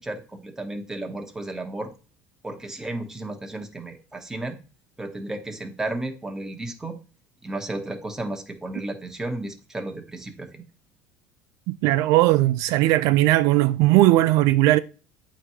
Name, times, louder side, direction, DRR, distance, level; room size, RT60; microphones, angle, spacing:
voice 1, 0.0-1.9 2.4-4.6 5.0-7.0 7.4-10.7, right 2 dB, 10° right, 1.1 m, -33 dB
voice 2, 11.7-14.8, right 17 dB, 65° right, 0.3 m, -18 dB
8.4 x 3.0 x 5.6 m
cardioid pair, 140°, 6 cm